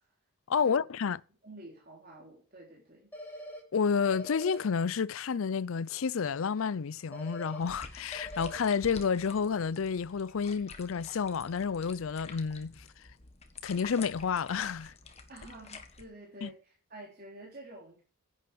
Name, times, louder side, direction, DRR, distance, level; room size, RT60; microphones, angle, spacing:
voice 1, 0.5-1.2 3.7-12.8 13.6-14.9 16.4-16.5, left 6 dB, 75° left, 0.5 m, -30 dB
voice 2, 1.4-3.1 15.3-18.0, right 1 dB, 45° right, 3.7 m, -49 dB
sound 1, 3.1-3.6 4.1-4.6 7.1-7.6 8.1-8.6, equal, 10° left, 3.4 m, -43 dB
sound 2, 7.6-16.0, left 4 dB, 30° left, 1.4 m, -49 dB
10.5 x 9.6 x 5.0 m
head